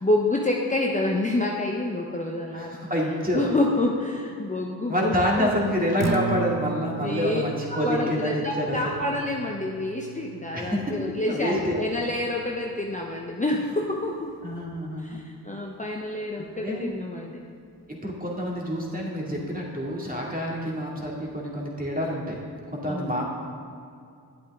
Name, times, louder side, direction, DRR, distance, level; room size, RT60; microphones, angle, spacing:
voice 1, 0.0-2.7 3.3-5.5 7.0-7.4 7.7-14.3 15.0-17.4 22.9-23.2, left 2 dB, 20° left, -1 dB, 0.8 m, -28 dB
voice 2, 2.5-3.5 4.9-9.0 10.5-10.9 11.3-11.8 14.4-15.2 16.6-16.9 17.9-22.4 22.7-23.2, equal, 20° right, -3 dB, 2.2 m, -27 dB
Acoustic guitar, 5.9-14.1, right 4 dB, 40° right, 0.8 m, -36 dB
8.9 x 8.2 x 3.7 m, 2.4 s
cardioid pair, 55°, 41 cm